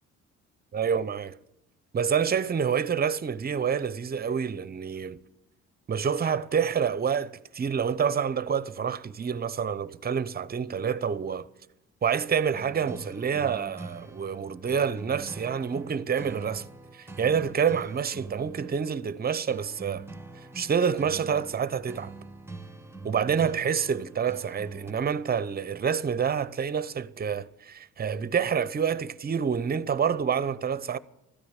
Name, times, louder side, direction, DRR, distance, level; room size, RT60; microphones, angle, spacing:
voice 1, 0.7-1.4 1.9-5.2 5.9-11.5 12.0-16.7 16.9-20.1 20.5-22.1 23.0-31.0, right 7 dB, 30° right, 0.7 m, -27 dB
sound 1, 12.5-24.9, right 3 dB, 10° right, 0.9 m, -44 dB
13.5 x 9.8 x 9.0 m
cardioid pair, 90°, 30 cm